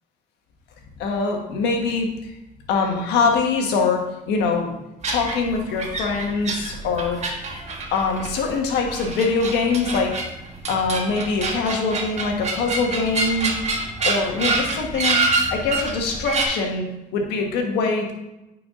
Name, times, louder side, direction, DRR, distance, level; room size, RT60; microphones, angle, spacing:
voice 1, 1.0-2.1 2.7-4.8 5.1-7.2 7.9-10.1 10.7-13.5 14.0-15.2 15.5-16.8 17.1-18.1, left 4 dB, 90° left, 2 dB, 1.5 m, -23 dB
sound 1, 5.0-16.4, right 3 dB, 40° right, 1.5 m, -27 dB
9.6 x 4.8 x 3.8 m, 0.94 s
cardioid pair, 110°, 17 cm